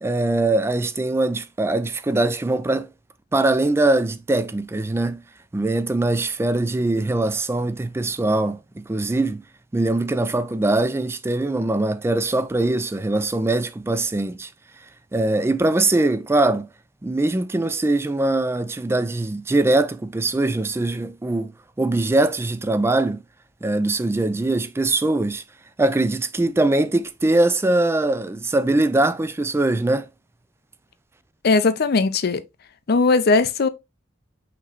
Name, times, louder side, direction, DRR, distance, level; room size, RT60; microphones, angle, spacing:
voice 1, 0.0-2.9 3.3-5.2 5.5-9.4 9.7-14.5 15.1-16.7 17.0-21.5 21.8-23.2 23.6-25.4 25.8-30.1, right 2 dB, 15° right, 0.3 m, -22 dB
voice 2, 31.4-32.4 32.9-33.7, left 3 dB, 55° left, 0.5 m, -18 dB
5.8 x 3.0 x 2.9 m
head